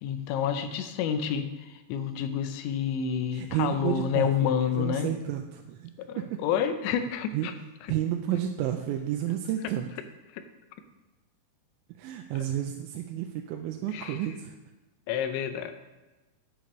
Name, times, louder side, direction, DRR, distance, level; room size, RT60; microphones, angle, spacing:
voice 1, 0.0-5.1 6.0-7.5 10.3-10.4 13.9-14.2 15.1-15.7, left 8 dB, 85° left, 8 dB, 3.0 m, -29 dB
voice 2, 3.3-4.5 4.8-6.4 7.3-7.5 7.9-9.9 12.0-14.6, right 11 dB, 90° right, 4 dB, 2.9 m, -31 dB
11.0 x 8.3 x 3.1 m, 1.1 s
omnidirectional pair, 5.2 m